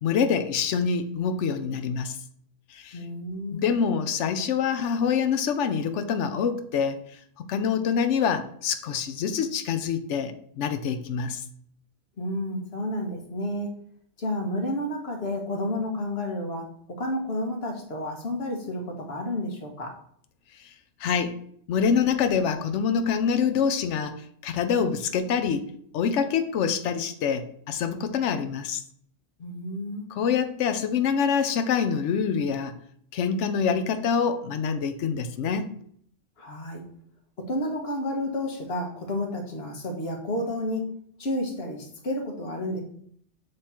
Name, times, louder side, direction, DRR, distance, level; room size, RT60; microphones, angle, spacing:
voice 1, 0.0-2.2 2.7-3.0 3.5-7.0 7.5-11.4 21.0-21.4 21.7-25.7 25.9-28.8 30.1-32.8 33.1-35.7, left 6 dB, 70° left, 9 dB, 1.0 m, -26 dB
voice 2, 2.9-3.7 12.2-13.7 14.2-16.7 17.0-19.9 29.4-30.0 36.4-36.8 37.5-40.9 41.2-42.8, left 1 dB, 55° left, 2 dB, 1.4 m, -31 dB
7.8 x 3.2 x 4.3 m, 0.64 s
omnidirectional pair, 1.3 m